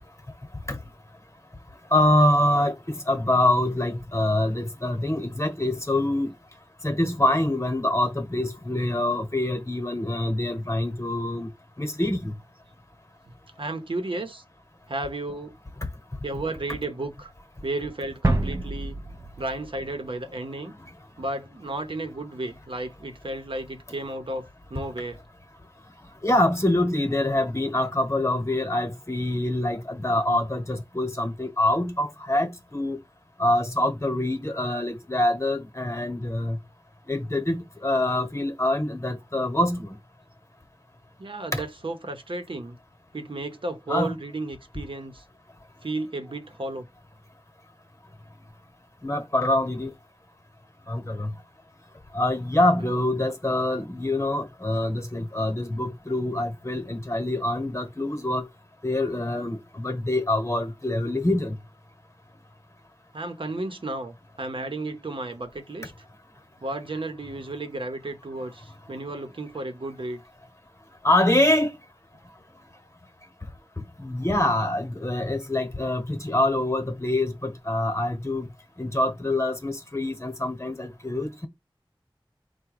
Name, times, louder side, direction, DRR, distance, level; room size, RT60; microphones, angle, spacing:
voice 1, 1.9-6.3 6.8-11.5 11.8-12.3 26.2-33.0 33.4-36.6 37.1-39.9 41.5-41.6 43.9-44.2 49.0-49.9 50.9-51.3 52.1-58.5 58.8-61.6 71.0-71.7 74.0-78.5 78.8-81.5, left 1 dB, 30° left, 1.1 m, -25 dB
voice 2, 13.6-14.4 14.9-15.5 16.2-17.3 17.6-19.0 19.4-20.7 21.2-25.2 41.2-42.8 43.1-45.2 45.8-46.9 52.8-53.1 63.1-66.1 66.6-70.2, right 2 dB, 75° right, 0.9 m, -33 dB
sound 1, 18.2-20.7, right 2 dB, 30° right, 0.5 m, -28 dB
4.6 x 2.3 x 4.7 m
wide cardioid pair, 50°, 9 cm